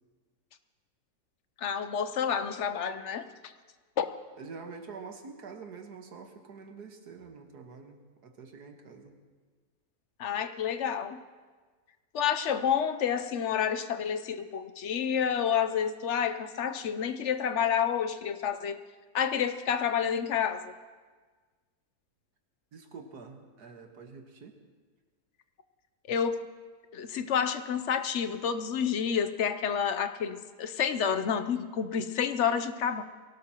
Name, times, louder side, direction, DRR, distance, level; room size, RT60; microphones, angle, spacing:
voice 1, 1.6-3.5 4.0-4.1 10.2-11.2 12.1-18.8 19.1-20.7 26.1-26.4 26.9-33.0, left 7 dB, 60° left, 10 dB, 0.8 m, -29 dB
voice 2, 4.3-9.2 22.7-24.6, right 5 dB, 80° right, 4 dB, 1.9 m, -46 dB
23.0 x 17.5 x 3.0 m, 1.4 s
omnidirectional pair, 1.7 m